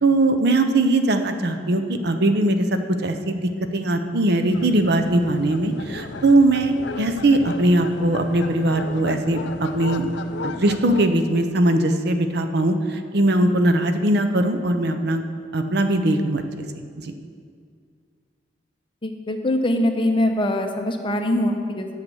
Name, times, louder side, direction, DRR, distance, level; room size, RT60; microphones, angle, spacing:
voice 1, 0.0-2.7 3.0-10.1 10.4-15.2 15.5-16.4 17.0-17.1, right 1 dB, 65° right, 7 dB, 0.7 m, -20 dB
sound 1, 4.5-11.1, left 3 dB, 70° left, 0.5 m, -35 dB
voice 2, 19.0-21.9, left 1 dB, 30° left, 4 dB, 0.8 m, -22 dB
8.9 x 5.7 x 7.8 m, 2.1 s
head